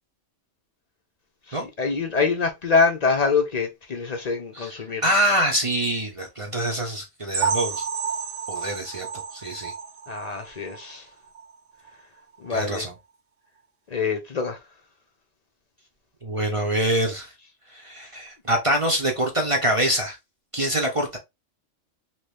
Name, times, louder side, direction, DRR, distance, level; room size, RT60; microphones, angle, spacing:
voice 1, 1.5-5.1 10.1-11.0 12.4-12.9 13.9-14.6, left 4 dB, 55° left, 0.4 m, -25 dB
voice 2, 5.0-7.8 8.5-9.1 9.3-9.7 12.5-12.9 16.2-17.3 17.7-20.2 20.5-21.2, right 1 dB, 35° right, 0.5 m, -25 dB
sound 1, 7.3-11.0 11.3-11.5 11.9-12.0 12.5-12.6, right 6 dB, 65° right, 0.9 m, -30 dB
2.9 x 2.6 x 3.2 m
omnidirectional pair, 1.3 m